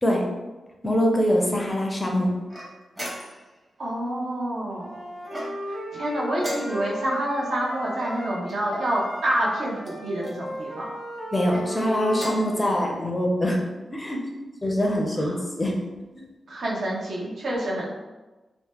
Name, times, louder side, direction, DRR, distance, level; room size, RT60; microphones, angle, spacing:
voice 1, 0.8-2.3 11.3-13.6 13.9-14.2 14.6-15.8, equal, 15° left, 0 dB, 0.4 m, -23 dB
sound 1, 2.5-3.6 5.2-5.8 6.4-7.1 8.0-8.9 9.8-10.4 11.3-11.7 12.1-12.6, equal, 20° right, 0.7 m, -36 dB
voice 2, 3.8-5.0 5.9-11.0 15.2-15.4 16.5-17.9, right 1 dB, 75° right, -4 dB, 0.7 m, -27 dB
Wind instrument woodwind instrument, 4.8-8.5 8.7-12.7, right 1 dB, 40° right, 1.3 m, -36 dB
2.9 x 2.0 x 3.4 m, 1.2 s
wide cardioid pair, 150°, 0 cm